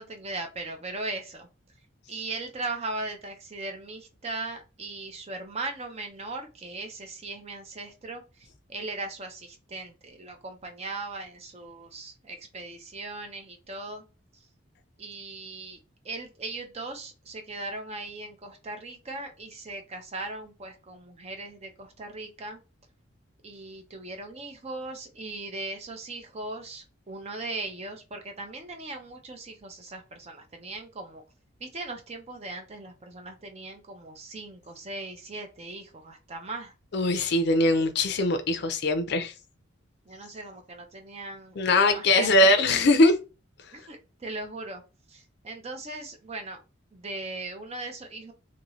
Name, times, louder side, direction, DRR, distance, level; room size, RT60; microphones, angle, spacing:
voice 1, 0.0-1.5 2.1-14.0 15.0-15.8 16.0-22.6 23.4-31.2 31.6-36.7 40.1-42.6 43.7-44.8 45.1-46.6 46.9-48.3, right 2 dB, 30° right, 0.5 m, -38 dB
voice 2, 36.9-39.3 41.6-43.2, left 2 dB, 55° left, 0.5 m, -21 dB
2.7 x 2.7 x 3.0 m
head